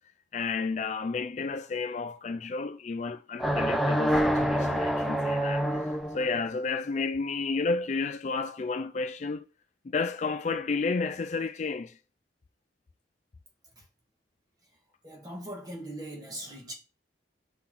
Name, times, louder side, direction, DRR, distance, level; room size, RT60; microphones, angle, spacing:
voice 1, 0.3-9.5 9.8-12.0, left 4 dB, 40° left, 0.3 m, -31 dB
sound 1, 3.4-6.3, equal, ahead, 0.7 m, -26 dB
voice 2, 15.0-16.7, right 1 dB, 20° right, 1.7 m, -40 dB
5.9 x 5.7 x 3.8 m
head